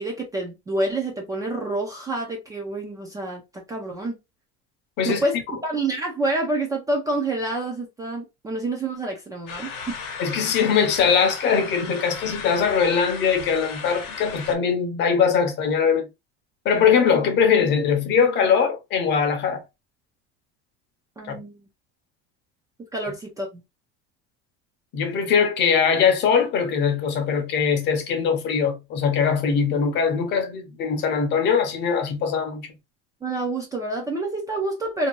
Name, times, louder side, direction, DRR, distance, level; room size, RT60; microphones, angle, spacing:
voice 1, 0.0-4.2 5.1-10.0 21.2-21.5 22.9-23.6 33.2-35.1, right 2 dB, 10° right, 0.3 m, -28 dB
sound 1, 9.5-14.6, left 5 dB, 70° left, 0.9 m, -36 dB
voice 2, 10.2-16.1 16.6-19.6 21.3-21.4 24.9-32.7, left 6 dB, 40° left, 0.6 m, -21 dB
2.6 x 2.2 x 3.0 m
cardioid pair, 160°, 29 cm